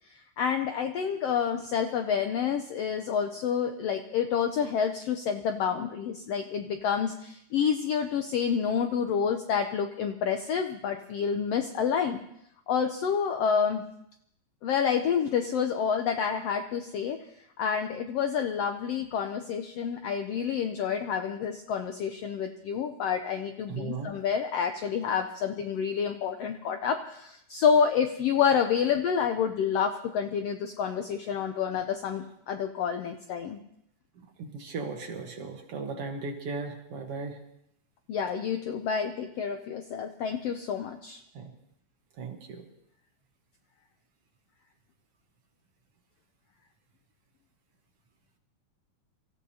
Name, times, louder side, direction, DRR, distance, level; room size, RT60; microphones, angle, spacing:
voice 1, 0.4-12.2 12.7-13.8 14.6-17.2 17.6-33.6 38.1-41.2, left 7 dB, 75° left, 6 dB, 1.4 m, -28 dB
voice 2, 23.7-24.1 34.2-37.4 41.3-41.5 42.1-42.6, right 4 dB, 60° right, 3 dB, 1.9 m, -37 dB
26.5 x 14.5 x 2.8 m, 0.75 s
omnidirectional pair, 3.5 m